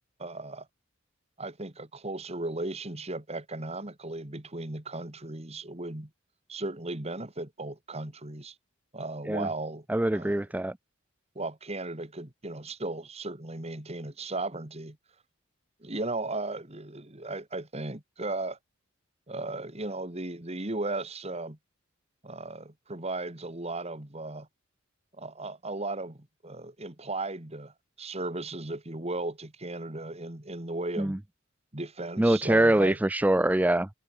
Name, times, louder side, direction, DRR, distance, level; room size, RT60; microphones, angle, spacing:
voice 1, 0.2-0.7 1.4-6.1 6.5-8.5 8.9-9.9 10.1-10.4 11.4-15.0 15.8-18.6 19.3-21.6 22.2-24.5 25.2-31.2 31.7-33.0, right 2 dB, 30° right, 2.2 m, -36 dB
voice 2, 9.9-10.8 31.0-31.2 32.2-33.9, right 1 dB, 10° right, 0.3 m, -24 dB
head